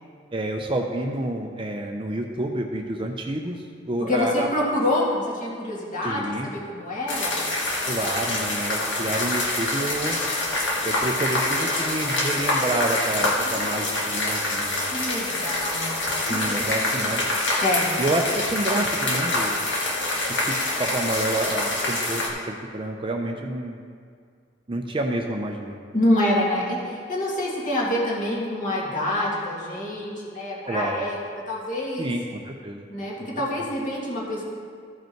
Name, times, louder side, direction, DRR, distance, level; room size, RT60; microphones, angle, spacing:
voice 1, 0.3-4.5 6.0-6.5 7.9-10.2 10.8-14.8 16.3-17.3 18.0-19.6 20.3-23.8 24.7-25.8 30.6-31.0 32.0-32.8 33.2-33.3, right 1 dB, 25° right, 2 dB, 0.5 m, -29 dB
voice 2, 4.0-7.4 13.4-14.0 14.9-16.4 16.8-17.1 17.6-17.9 25.9-31.2 31.5-32.1 32.9-34.4, left 1 dB, 45° left, -4 dB, 2.0 m, -26 dB
sound 1, 7.1-22.3, left 2 dB, 70° left, 1.6 m, -26 dB
14.0 x 5.2 x 4.5 m, 2.2 s
head